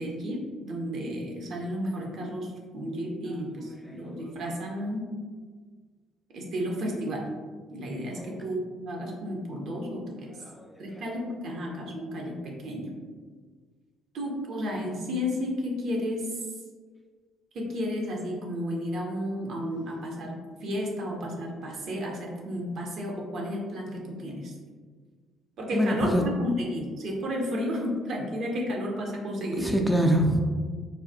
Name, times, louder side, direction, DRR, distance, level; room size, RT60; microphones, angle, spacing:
voice 1, 0.0-5.0 6.3-7.3 7.7-8.6 8.9-10.3 10.8-12.9 14.1-16.4 17.5-20.3 20.6-24.5 25.6-29.7, equal, 55° right, -1 dB, 0.6 m, -32 dB
voice 2, 25.7-26.2 29.6-30.4, equal, ahead, 1 dB, 0.4 m, -24 dB
3.3 x 2.3 x 2.6 m, 1.5 s
figure-of-eight pair, 45°, 0 cm